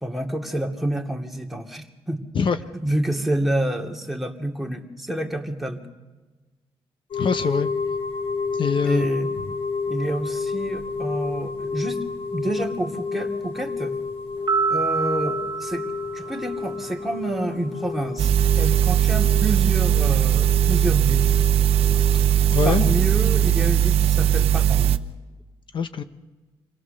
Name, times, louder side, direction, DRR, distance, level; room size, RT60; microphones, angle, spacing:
voice 1, 0.0-2.2 2.7-5.8 8.8-9.3 9.9-12.0 12.3-14.0 14.7-21.3 22.6-24.9, right 1 dB, ahead, 1 dB, 2.6 m, -28 dB
sound 1, 7.1-24.8, left 4 dB, 70° left, 5.3 m, -31 dB
voice 2, 7.2-7.7 8.5-9.1 22.1-23.0 25.7-26.0, left 6 dB, 55° left, 10 dB, 1.0 m, -24 dB
sound 2, 14.5-17.0, right 5 dB, 45° right, 0.8 m, -27 dB
sound 3, 18.2-25.0, right 11 dB, 85° right, 0.8 m, -19 dB
26.5 x 17.5 x 6.7 m, 1.2 s
cardioid pair, 75°, 10 cm